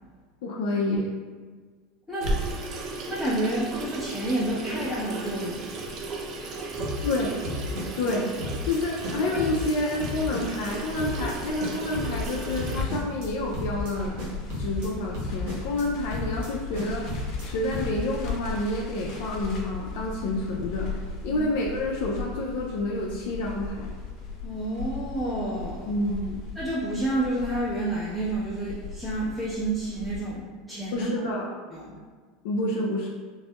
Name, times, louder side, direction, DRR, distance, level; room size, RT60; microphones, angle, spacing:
voice 1, 0.4-1.1 7.0-7.4 8.0-8.3 8.6-14.2 14.5-17.1 17.4-20.9 21.2-23.9 25.9-26.4 30.9-31.5 32.4-33.1, left 2 dB, 75° left, -2 dB, 0.4 m, -28 dB
Water tap faucet / Sink (filling or washing), 2.2-12.8, right 2 dB, 45° right, 0.6 m, -35 dB
voice 2, 3.1-5.7 6.7-6.9 21.2-21.4 24.4-25.9 26.5-30.4 30.7-31.1 31.7-32.0, right 1 dB, ahead, -15 dB, 1.1 m, -29 dB
sound 1, 6.8-7.2 7.4-8.1 8.4-8.8 9.0-9.7 10.0-10.7 11.0-11.3 11.6-12.3 12.6-13.3 13.5-13.9 14.2-14.9 15.1-15.8 16.1-16.5 16.7-17.4 17.7-18.1, left 1 dB, 80° right, 1.1 m, -34 dB
Crackle, 10.3-30.2, left 4 dB, 50° left, 1.0 m, -38 dB
4.0 x 2.6 x 2.3 m, 1.5 s
supercardioid pair, 110°, 0 cm